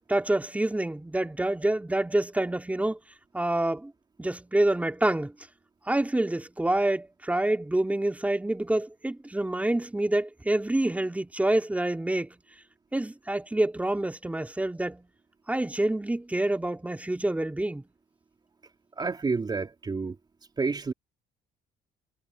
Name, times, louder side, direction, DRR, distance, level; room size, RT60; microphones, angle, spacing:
voice 1, 0.0-3.0 3.3-3.9 4.2-5.3 5.9-12.4 12.9-15.1 15.5-17.8, right 1 dB, 10° right, 3.2 m, -27 dB
voice 2, 19.0-20.2 20.6-20.9, right 4 dB, 25° right, 3.8 m, -29 dB
cardioid pair, 110°, 17 cm